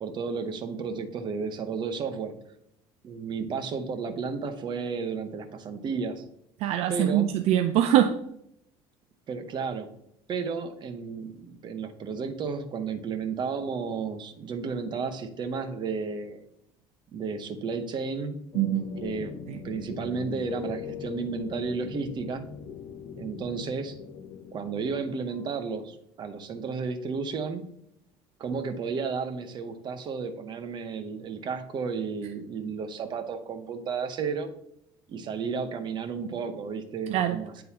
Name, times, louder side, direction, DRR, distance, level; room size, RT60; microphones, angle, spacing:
voice 1, 0.0-2.4 3.0-6.2 6.9-7.3 9.3-9.9 10.3-16.4 17.1-18.4 19.0-19.3 19.6-22.4 23.2-24.0 24.5-27.6 28.4-34.5 35.1-37.6, right 5 dB, 40° right, 7 dB, 0.8 m, -33 dB
voice 2, 6.6-8.2 18.6-18.9 37.1-37.4, right 11 dB, 60° right, 7 dB, 0.4 m, -23 dB
sound 1, 18.5-25.7, left 6 dB, 45° left, 0.7 m, -40 dB
9.6 x 3.8 x 2.8 m, 0.75 s
cardioid pair, 130°, 12 cm